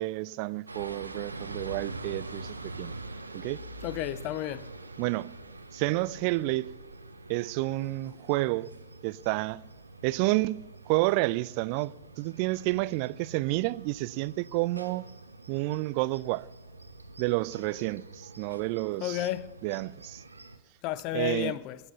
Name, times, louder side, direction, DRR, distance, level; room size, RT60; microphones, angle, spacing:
voice 1, 0.0-2.9 3.3-3.6 5.0-5.3 5.7-6.7 7.3-8.7 9.0-9.6 10.0-15.1 15.5-16.5 17.2-19.2 19.6-20.2 21.1-21.6, right 20 dB, 45° right, 0.4 m, -30 dB
sound 1, 0.7-20.6, right 2 dB, 80° right, 1.0 m, -45 dB
voice 2, 3.8-4.7 19.0-19.5 20.8-21.8, left 14 dB, 40° left, 0.6 m, -32 dB
22.5 x 10.0 x 5.5 m
figure-of-eight pair, 90°, 0 cm